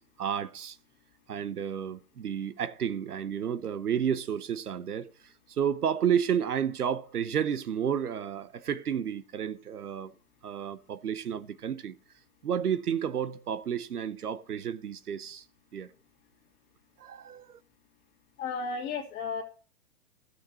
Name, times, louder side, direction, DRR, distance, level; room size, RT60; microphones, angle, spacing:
voice 1, 0.2-0.8 1.3-10.1 10.4-11.9 12.4-15.4 15.7-15.9 17.0-17.6, right 8 dB, 90° right, 0.9 m, -31 dB
voice 2, 18.4-19.4, left 4 dB, 25° left, 2.4 m, -33 dB
13.5 x 6.6 x 4.2 m
hypercardioid pair, 140°, 44 cm